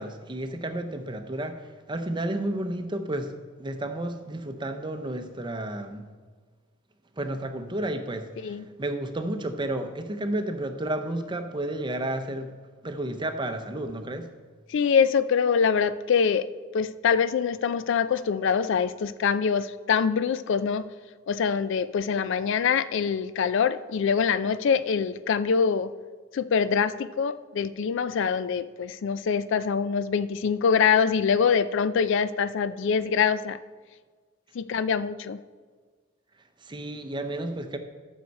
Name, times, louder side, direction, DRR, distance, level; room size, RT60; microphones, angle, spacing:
voice 1, 0.0-6.1 7.2-12.5 12.8-14.3 36.6-37.8, right 1 dB, 20° right, 7 dB, 0.7 m, -32 dB
voice 2, 8.4-8.7 14.7-16.5 16.7-20.8 21.3-25.9 26.3-33.6 34.5-35.4, left 6 dB, 60° left, 14 dB, 0.3 m, -24 dB
14.0 x 6.4 x 4.1 m, 1.5 s
head